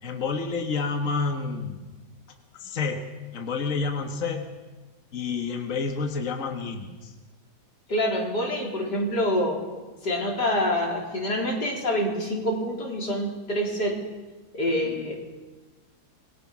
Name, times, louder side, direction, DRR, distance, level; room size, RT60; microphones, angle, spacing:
voice 1, 0.0-1.8 2.5-3.0 3.3-4.5 5.1-7.1 14.9-15.1, left 4 dB, 50° left, 4 dB, 1.9 m, -29 dB
voice 2, 7.9-9.6 10.0-14.0 14.5-15.1, equal, 90° left, 0 dB, 4.6 m, -26 dB
27.0 x 21.0 x 6.1 m, 1.2 s
omnidirectional pair, 1.8 m